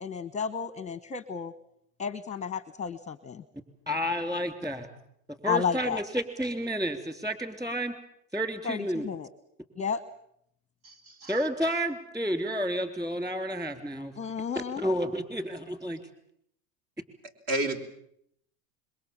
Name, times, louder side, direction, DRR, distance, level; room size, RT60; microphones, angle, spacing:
voice 1, 0.0-1.5 2.0-3.4 5.5-6.0 8.6-9.3 9.8-10.0 14.2-14.8, left 6 dB, 15° left, 14 dB, 0.9 m, -32 dB
voice 2, 3.9-4.9 5.4-7.9 8.3-9.1 11.3-14.1 14.6-16.0, equal, 10° right, 9 dB, 3.5 m, -30 dB
voice 3, 10.8-11.3 17.5-17.8, right 1 dB, 50° right, 8 dB, 3.8 m, -30 dB
26.5 x 23.0 x 7.3 m, 0.70 s
supercardioid pair, 125°, 45 cm